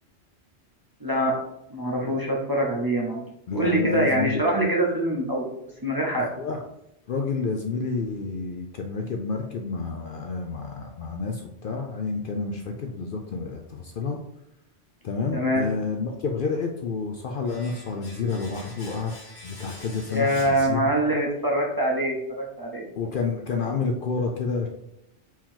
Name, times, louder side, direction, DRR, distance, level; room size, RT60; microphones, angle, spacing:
voice 1, 1.0-1.3 1.7-3.2 3.5-5.5 5.8-6.3 15.3-15.7 20.1-22.9, right 1 dB, 20° right, -2 dB, 0.7 m, -24 dB
voice 2, 3.5-4.4 6.2-6.6 7.1-14.2 15.0-19.1 19.4-20.9 22.9-24.7, left 4 dB, 60° left, 2 dB, 0.6 m, -29 dB
Domestic sounds home sounds, 17.5-21.3 21.5-21.7, left 1 dB, 75° left, 1.9 m, -46 dB
4.5 x 2.9 x 3.7 m, 0.81 s
omnidirectional pair, 1.2 m